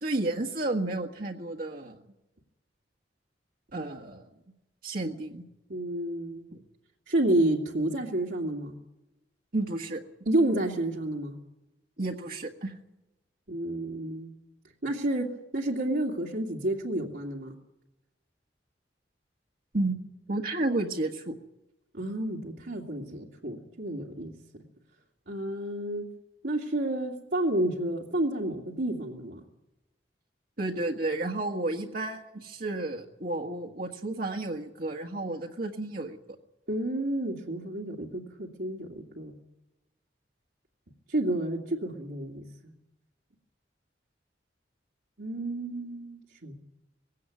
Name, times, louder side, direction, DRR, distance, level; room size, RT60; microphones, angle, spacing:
voice 1, 0.0-2.0 3.7-4.3 4.8-5.4 6.5-6.6 9.5-10.0 12.0-12.8 19.7-20.0 20.3-21.4 30.6-36.2, right 2 dB, 55° right, 1 dB, 1.6 m, -32 dB
voice 2, 5.7-6.4 7.1-8.7 10.3-11.3 13.5-14.3 14.8-15.3 15.5-17.5 21.9-24.3 25.3-26.1 26.4-29.4 36.7-39.3 41.1-42.7 45.2-46.5, right 1 dB, 70° right, -3 dB, 2.5 m, -30 dB
20.0 x 17.0 x 9.5 m, 0.95 s
head